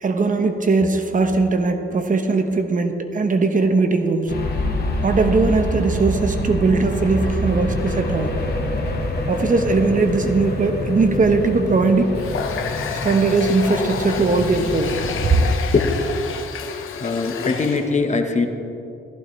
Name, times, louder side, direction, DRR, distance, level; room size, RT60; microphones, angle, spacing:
voice 1, 0.0-4.3 5.0-8.4 9.3-12.2 13.0-15.0 15.2-15.4, right 3 dB, 40° right, 6 dB, 1.0 m, -19 dB
sound 1, 4.3-15.5, left 1 dB, 50° left, 2.0 m, -26 dB
Water tap faucet, 12.2-17.9, left 6 dB, 75° left, 1.1 m, -30 dB
voice 2, 17.0-18.5, left 4 dB, 35° left, 4 dB, 1.2 m, -21 dB
15.0 x 14.5 x 3.2 m, 2.8 s
cardioid pair, 95°, 21 cm